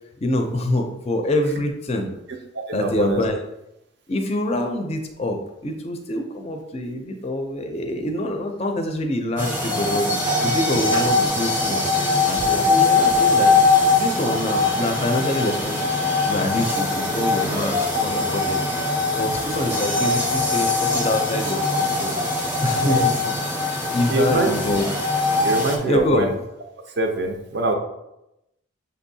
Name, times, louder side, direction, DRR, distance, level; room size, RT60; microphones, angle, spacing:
voice 1, 0.2-2.1 2.7-3.4 4.1-10.1 10.4-13.5 14.0-15.9 16.2-18.6 18.9-22.1 22.6-23.3 23.7-24.9 25.8-26.3, left 1 dB, 30° left, 4 dB, 0.4 m, -25 dB
voice 2, 2.5-3.2 10.7-10.8 22.8-23.1 24.1-24.5 25.4-26.3 27.0-27.7, right 2 dB, 50° right, 4 dB, 0.5 m, -23 dB
sound 1, 9.4-25.8, left 3 dB, 10° right, 0.6 m, -21 dB
6.6 x 2.7 x 2.7 m, 0.89 s
head